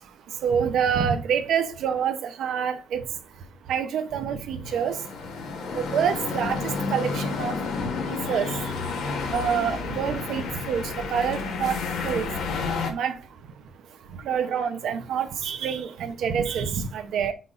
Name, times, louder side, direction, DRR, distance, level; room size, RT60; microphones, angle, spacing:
voice 1, 0.4-3.0 3.7-5.0 5.7-7.6 8.1-8.5 9.3-10.8 11.1-11.8 12.0-12.3 12.9-13.1 14.2-17.3, right 7 dB, 75° right, 1.0 m, -26 dB
sound 1, 4.6-12.9, left 4 dB, 85° left, 1.6 m, -30 dB
6.0 x 4.2 x 4.4 m
cardioid pair, 90°, 0 cm